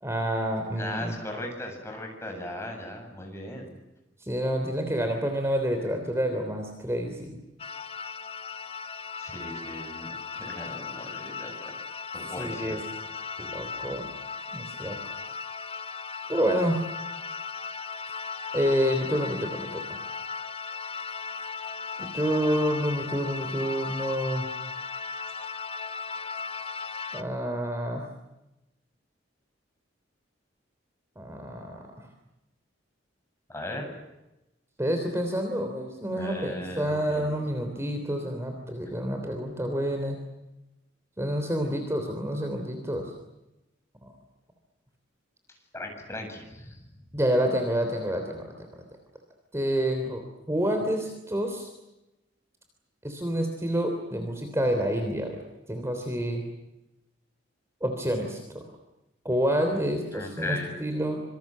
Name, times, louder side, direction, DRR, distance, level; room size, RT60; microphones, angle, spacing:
voice 1, 0.0-1.2 4.2-7.4 12.4-12.8 13.4-14.1 14.5-15.0 16.3-16.8 18.5-20.0 22.0-24.4 27.1-28.1 31.2-32.1 34.8-40.2 41.2-43.1 44.0-44.1 47.1-48.5 49.5-51.7 53.0-55.4 55.7-56.4 57.8-58.6 59.3-61.2, equal, 15° right, 4 dB, 3.4 m, -28 dB
voice 2, 0.7-3.7 9.2-11.7 12.1-12.8 33.5-33.9 36.2-37.3 45.7-46.9 60.1-60.7, left 1 dB, 15° left, 2 dB, 7.8 m, -37 dB
sound 1, 7.6-27.2, left 5 dB, 30° left, 1.1 m, -37 dB
27.0 x 25.5 x 7.6 m, 0.95 s
head